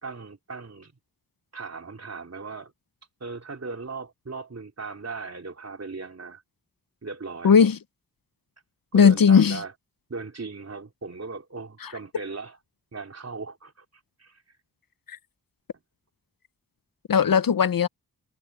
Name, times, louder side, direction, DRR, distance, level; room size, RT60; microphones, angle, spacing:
voice 1, 0.0-0.9 1.5-2.7 3.2-6.4 7.0-7.6 8.9-9.7 10.1-12.6 12.9-13.9 14.2-14.4, right 4 dB, 45° right, 3.6 m, -37 dB
voice 2, 7.4-7.8 8.9-9.6 11.8-11.9 15.1-15.2 17.1-17.9, left 6 dB, 65° left, 0.8 m, -17 dB
wide cardioid pair, 85°, 37 cm